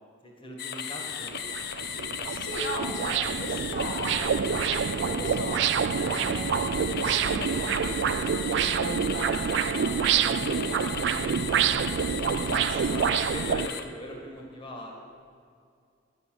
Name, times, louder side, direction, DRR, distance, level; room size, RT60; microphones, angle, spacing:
voice 1, 0.2-2.0 11.7-15.0, equal, 30° left, 0 dB, 1.8 m, -41 dB
sound 1, 0.6-13.8, left 8 dB, 60° left, 0.7 m, -36 dB
sound 2, 0.8-0.9 1.3-13.7, right 8 dB, 65° right, 0.3 m, -27 dB
voice 2, 1.9-12.5 12.8-13.2, left 1 dB, 80° left, -1 dB, 1.8 m, -38 dB
10.0 x 6.7 x 7.8 m, 2.3 s
head